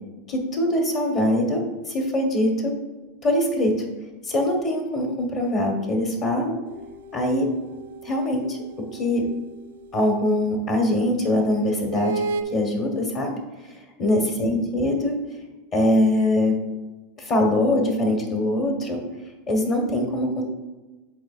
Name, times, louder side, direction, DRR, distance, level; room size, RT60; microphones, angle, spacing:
voice 1, 0.3-2.8 3.2-3.9 4.2-6.6 7.1-7.5 8.0-9.3 9.9-12.2 12.5-15.2 15.7-16.5 17.2-19.0 19.5-20.4, left 1 dB, 40° left, 2 dB, 1.2 m, -23 dB
sound 1, 6.6-10.0 11.9-12.4, right 3 dB, 80° right, 0.5 m, -34 dB
9.8 x 4.2 x 2.4 m, 1.2 s
hypercardioid pair, 115°, 0 cm